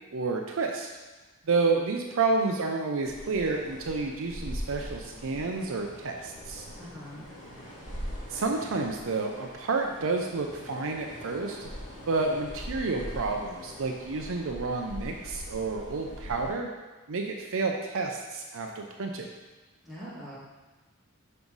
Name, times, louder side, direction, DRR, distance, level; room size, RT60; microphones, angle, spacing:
voice 1, 0.1-0.9 1.5-6.7 8.3-11.7 12.1-16.7 17.1-19.3, right 3 dB, 65° right, 2 dB, 0.6 m, -30 dB
sound 1, 3.0-16.5, equal, 35° left, 2.1 m, -42 dB
voice 2, 6.8-7.3 19.8-20.4, equal, ahead, -10 dB, 2.1 m, -43 dB
5.9 x 5.6 x 3.9 m, 1.2 s
head